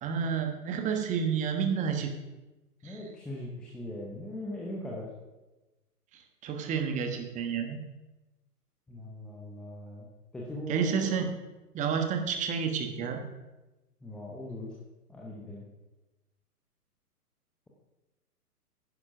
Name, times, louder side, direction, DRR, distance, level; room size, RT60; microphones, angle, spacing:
voice 1, 0.0-2.1 2.8-3.0 6.1-7.8 10.7-11.3 11.7-13.2, right 6 dB, 15° right, 5 dB, 1.3 m, -30 dB
voice 2, 2.8-5.1 8.9-10.1 10.3-11.1 14.0-14.7 15.1-15.6, equal, ahead, -4 dB, 0.6 m, -40 dB
10.5 x 9.7 x 6.0 m, 1.1 s
figure-of-eight pair, 125°, 47 cm